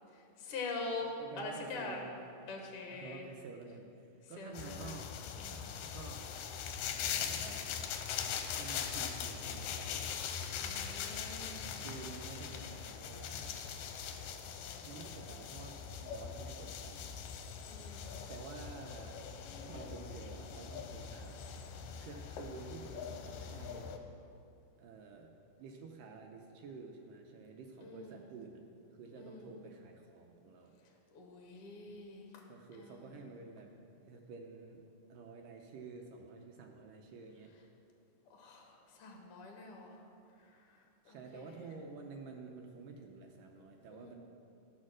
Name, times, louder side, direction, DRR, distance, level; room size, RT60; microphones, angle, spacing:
voice 1, 0.1-2.0 2.5-3.3 4.4-4.9 5.4-5.7 10.6-11.7 17.6-18.2 27.8-28.2 29.2-29.5 31.1-32.4 32.7-33.2 38.3-40.0 40.4-41.6 43.9-44.1, left 3 dB, 60° left, 1 dB, 1.6 m, -45 dB
voice 2, 1.0-2.2 2.9-3.9 4.3-5.1 5.5-6.4 7.3-7.7 8.2-10.0 11.7-13.6 14.9-17.1 18.3-19.2 19.6-21.4 21.9-23.9 24.8-25.3 25.6-28.6 28.9-30.7 32.5-33.7 34.0-34.8 35.1-37.5 41.0-44.2, right 4 dB, 75° right, 2 dB, 2.2 m, -50 dB
sound 1, 4.5-24.0, left 7 dB, 80° left, 2.2 m, -41 dB
13.0 x 6.5 x 6.2 m, 2.6 s
omnidirectional pair, 4.2 m